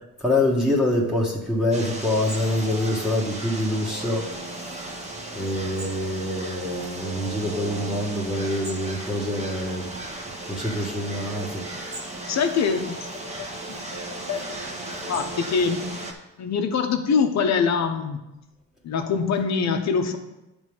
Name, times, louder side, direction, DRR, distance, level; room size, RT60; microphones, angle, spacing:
voice 1, 0.2-4.3 4.7-4.8 5.3-9.9 10.5-11.6, left 1 dB, ahead, -4 dB, 1.7 m, -25 dB
sound 1, 1.7-16.1, right 2 dB, 20° right, 1.6 m, -35 dB
voice 2, 12.3-13.8 14.1-14.4 15.1-15.9 16.4-18.2 18.8-20.2, left 5 dB, 65° left, 5 dB, 1.1 m, -24 dB
10.5 x 3.6 x 6.4 m, 0.98 s
cardioid pair, 90°, 30 cm